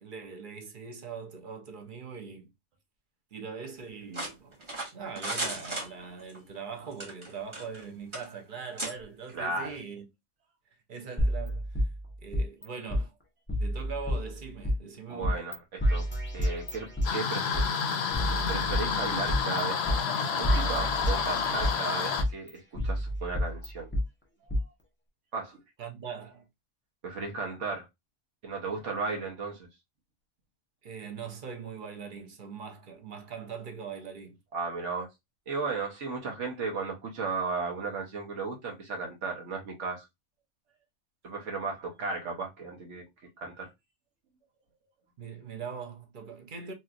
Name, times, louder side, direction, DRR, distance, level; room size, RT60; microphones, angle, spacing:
voice 1, 0.0-2.5 3.3-4.6 4.9-10.1 10.9-11.8 12.2-13.1 13.6-15.4 25.8-26.5 30.8-34.4 36.2-36.4 45.2-46.7, right 6 dB, 50° right, 0.8 m, -41 dB
sound 1, 4.1-6.4 6.9-7.8 8.1-8.3 8.8-8.9, right 1 dB, 25° right, 0.9 m, -35 dB
voice 2, 9.3-9.7 15.1-16.1 16.3-17.6 18.5-23.9 25.3-25.6 27.0-27.9 28.4-29.7 34.5-35.1 35.5-40.1 41.2-43.0 43.4-43.7, right 4 dB, 80° right, 1.2 m, -35 dB
sound 2, 11.2-12.6 12.9-13.0 13.5-14.7 15.2-15.5 15.8-17.7 18.1-19.6 19.9-20.0 20.4-21.8 22.2-24.0 24.5-24.6, equal, 10° left, 0.8 m, -29 dB
sound 3, 17.0-22.2, left 6 dB, 65° left, 0.8 m, -29 dB
3.1 x 2.9 x 2.4 m
omnidirectional pair, 1.2 m